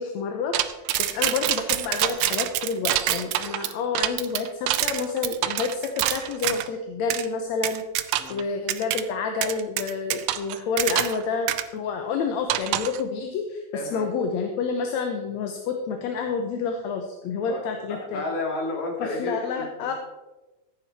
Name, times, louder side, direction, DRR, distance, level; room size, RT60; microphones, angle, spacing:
voice 1, 0.0-7.8 8.3-18.2 19.0-19.9, left 5 dB, 70° left, 5 dB, 2.1 m, -29 dB
sound 1, 0.5-6.7 7.1-7.3 7.6-8.4 8.7-9.0 9.4-11.2 11.5-11.6 12.5-13.0, right 13 dB, 85° right, 2.1 m, -26 dB
voice 2, 13.7-14.1 17.5-17.6 17.9-19.9, left 2 dB, 50° left, 0 dB, 3.5 m, -32 dB
14.5 x 9.3 x 4.2 m, 1.1 s
omnidirectional pair, 3.6 m